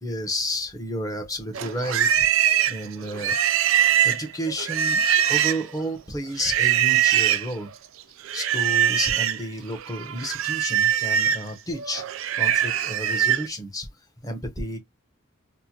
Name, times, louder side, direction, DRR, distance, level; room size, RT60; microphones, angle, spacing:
voice 1, 0.0-2.2 2.7-3.4 4.0-5.0 5.3-7.7 8.3-12.0 12.3-13.9 14.2-14.8, equal, 15° left, 0.8 m, -31 dB
Livestock farm animals working animals, 1.5-5.8 6.4-7.5 8.3-9.4 9.8-13.5, right 10 dB, 75° right, 0.4 m, -22 dB
4.2 x 2.1 x 2.8 m
head